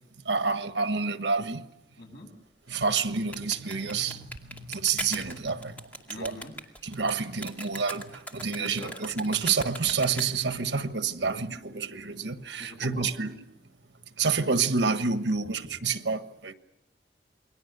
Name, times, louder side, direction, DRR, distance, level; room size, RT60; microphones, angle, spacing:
voice 1, 0.3-1.6 2.7-5.7 6.1-6.4 6.8-13.4 14.2-16.5, right 5 dB, 80° right, 1.4 m, -28 dB
voice 2, 2.0-2.3 6.1-6.5 8.6-8.9 12.6-13.1, left 2 dB, 70° left, 7.7 m, -43 dB
sound 1, 2.7-10.6, equal, 10° left, 2.3 m, -40 dB
28.5 x 22.5 x 6.9 m
head